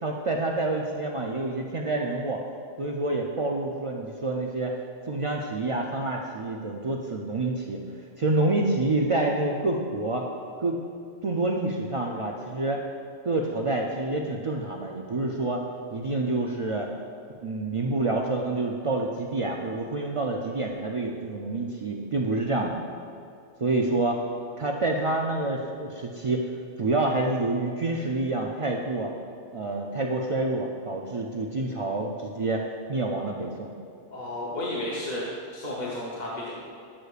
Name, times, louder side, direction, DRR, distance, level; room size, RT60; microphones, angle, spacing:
voice 1, 0.0-2.4 2.8-4.7 5.1-7.8 8.2-10.3 10.6-10.8 11.2-12.8 13.2-15.6 15.9-16.9 17.4-22.8 23.6-24.2 24.6-26.5 26.8-29.1 29.5-33.7, right 2 dB, 60° right, 0 dB, 0.3 m, -27 dB
voice 2, 34.1-35.2 35.5-36.5, left 1 dB, 45° left, -6 dB, 1.0 m, -32 dB
11.0 x 6.5 x 2.4 m, 2.4 s
omnidirectional pair, 1.1 m